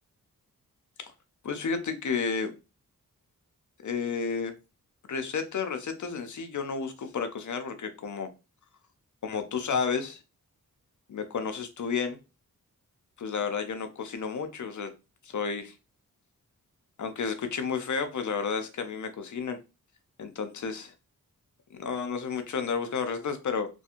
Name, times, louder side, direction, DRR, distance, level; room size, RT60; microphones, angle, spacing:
voice 1, 1.4-2.5 3.8-4.5 5.1-8.3 9.2-10.2 11.1-12.2 13.2-14.9 15.2-15.8 17.0-19.6 20.2-20.9 21.7-23.7, left 5 dB, 55° left, 8 dB, 0.6 m, -31 dB
2.4 x 2.3 x 2.8 m, 0.29 s
cardioid pair, 55°, 35 cm